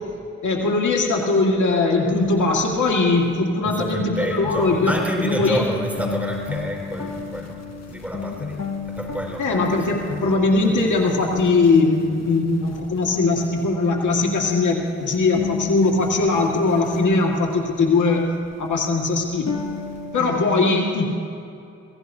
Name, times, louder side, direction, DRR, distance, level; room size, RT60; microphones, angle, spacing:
voice 1, 0.4-4.9 5.2-5.6 9.4-19.6 20.1-21.1, left 3 dB, 85° left, -1 dB, 1.9 m, -20 dB
voice 2, 3.6-7.6 7.9-8.6 8.8-9.6 9.9-10.8, equal, 5° right, 0 dB, 4.6 m, -29 dB
sound 1, 4.4-20.2, left 6 dB, 60° left, 1.3 m, -34 dB
27.5 x 17.0 x 2.7 m, 2.6 s
cardioid pair, 50°, 29 cm